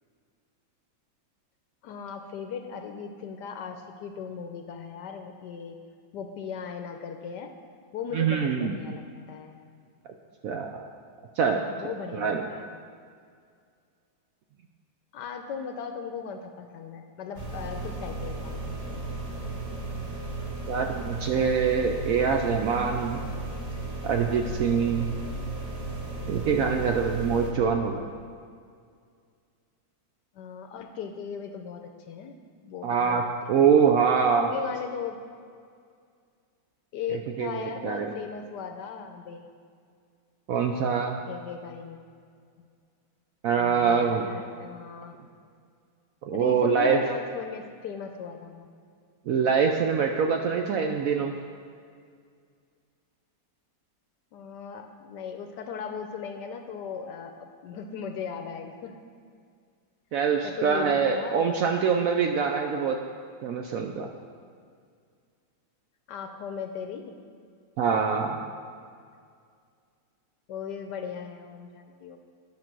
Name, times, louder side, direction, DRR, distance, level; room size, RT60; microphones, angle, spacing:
voice 1, 1.8-5.8 6.1-7.5 7.9-9.6 11.7-12.8 15.1-19.2 30.3-32.4 32.6-33.3 33.6-33.9 34.3-35.2 36.9-39.5 41.3-42.0 42.6-42.7 43.5-45.2 46.3-48.7 54.3-59.0 60.4-61.7 62.1-62.5 66.1-67.2 70.5-72.2, left 6 dB, 70° left, 6 dB, 1.1 m, -38 dB
voice 2, 8.1-8.8 10.4-10.9 11.4-11.6 12.1-12.5 20.7-23.2 24.0-25.1 26.3-28.1 32.8-33.2 33.5-34.5 37.4-38.1 40.5-41.2 43.4-44.3 46.3-47.0 49.3-51.3 60.1-63.0 63.4-64.1 67.8-68.4, right 6 dB, 80° right, 3 dB, 0.7 m, -24 dB
sound 1, 17.3-27.5, right 2 dB, 25° right, 1.0 m, -35 dB
10.5 x 5.2 x 6.0 m, 2.2 s
omnidirectional pair, 2.0 m